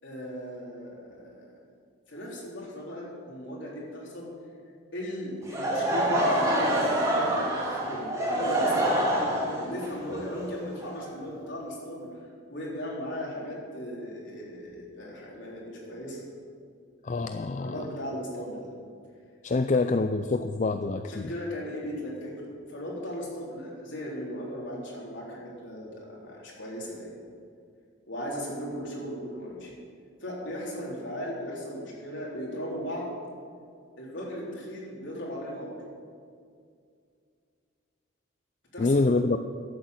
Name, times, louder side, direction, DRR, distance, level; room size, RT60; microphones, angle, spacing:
voice 1, 0.0-1.5 2.1-4.3 4.9-12.1 12.5-16.2 17.6-18.7 21.0-27.1 28.1-29.7 30.2-33.1 34.0-35.7 38.7-39.0, equal, 65° left, -4 dB, 3.7 m, -37 dB
Laughter / Crowd, 5.4-11.4, right 1 dB, 15° right, 2.5 m, -26 dB
voice 2, 17.0-17.9 19.4-21.3 38.8-39.4, left 3 dB, 35° left, 9 dB, 0.3 m, -26 dB
12.0 x 8.4 x 7.8 m, 2.2 s
head